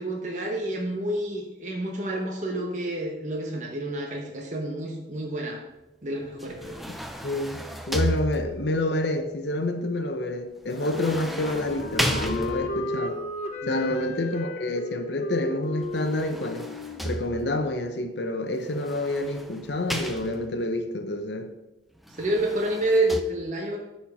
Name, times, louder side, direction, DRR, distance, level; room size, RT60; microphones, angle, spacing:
voice 1, 0.0-5.6 6.0-6.8 13.6-14.0 22.1-23.8, right 1 dB, 40° right, -1 dB, 1.0 m, -29 dB
sound 1, 6.4-8.8 10.7-13.0 15.8-17.7 18.7-20.7 22.0-23.2, equal, ahead, 0.5 m, -33 dB
voice 2, 6.9-13.2 13.7-16.7 17.0-21.5, left 1 dB, 65° left, 7 dB, 0.8 m, -28 dB
Wind instrument woodwind instrument, 10.9-17.7, left 2 dB, 35° left, 0.9 m, -35 dB
10.5 x 4.4 x 5.8 m, 0.99 s
head